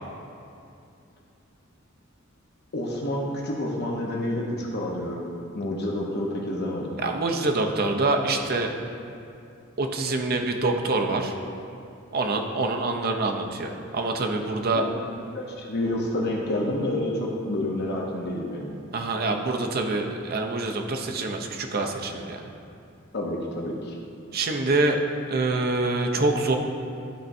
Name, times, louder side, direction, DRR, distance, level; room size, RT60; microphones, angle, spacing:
voice 1, 2.7-5.2 5.5-7.0 14.7-14.9 15.3-18.8 23.1-24.0, left 1 dB, 50° left, -1 dB, 0.8 m, -29 dB
voice 2, 7.0-8.7 9.8-11.3 12.1-14.8 18.9-22.5 24.3-25.0 25.3-26.6, right 2 dB, 45° right, 3 dB, 0.6 m, -25 dB
12.0 x 4.4 x 2.7 m, 2.6 s
head